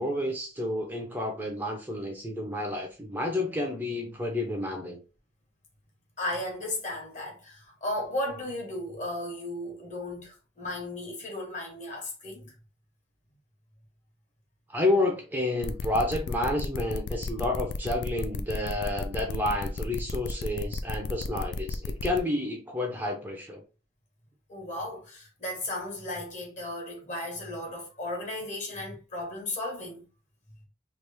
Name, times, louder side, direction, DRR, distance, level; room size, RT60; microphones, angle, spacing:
voice 1, 0.0-5.0 14.7-23.6, left 1 dB, 10° right, 0.5 m, -30 dB
voice 2, 6.2-12.5 24.5-30.1, left 1 dB, 45° left, 1.3 m, -35 dB
sound 1, 15.6-22.2, left 3 dB, 90° left, 0.3 m, -34 dB
3.1 x 2.4 x 3.3 m
head